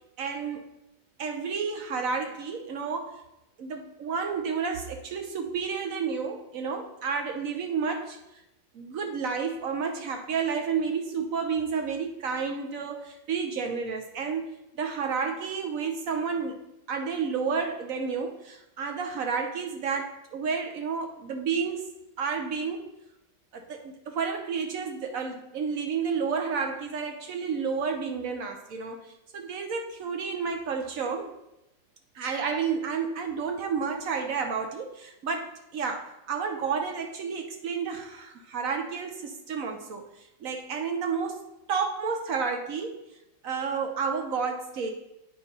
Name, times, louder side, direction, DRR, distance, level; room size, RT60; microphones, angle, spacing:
voice 1, 0.2-0.7 1.2-3.2 3.6-8.2 8.7-16.6 16.9-21.9 22.2-22.9 23.5-31.3 32.1-40.0 40.4-41.4 41.7-43.0 43.4-44.9, right 5 dB, 60° right, 4 dB, 0.9 m, -31 dB
8.9 x 3.2 x 5.3 m, 0.87 s
omnidirectional pair, 2.1 m